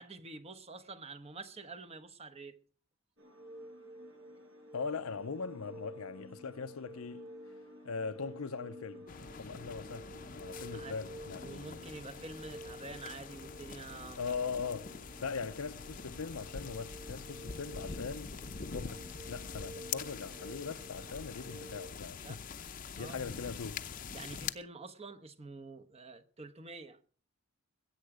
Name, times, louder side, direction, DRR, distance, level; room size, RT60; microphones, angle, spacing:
voice 1, 0.0-2.6 10.7-10.9 11.4-14.3 22.2-22.4 23.0-23.3 24.1-27.0, right 3 dB, 30° right, 1.1 m, -47 dB
sound 1, 3.2-21.9, equal, 65° right, 5.4 m, -51 dB
voice 2, 4.7-7.3 7.8-9.1 9.4-11.8 14.2-18.4 18.7-22.4 23.0-23.9, left 5 dB, 80° left, 0.6 m, -41 dB
sound 2, 9.1-24.5, left 5 dB, 40° left, 0.7 m, -45 dB
20.5 x 9.0 x 4.9 m
head